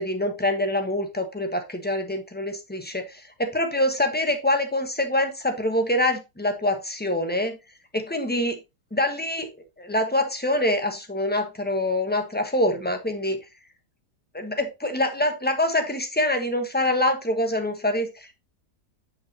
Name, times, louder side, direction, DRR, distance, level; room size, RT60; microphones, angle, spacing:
voice 1, 0.0-7.6 7.9-8.6 8.9-9.5 9.8-13.4 14.3-18.3, left 1 dB, 5° left, 6 dB, 0.9 m, -25 dB
8.0 x 6.4 x 2.8 m, 0.24 s
omnidirectional pair, 1.7 m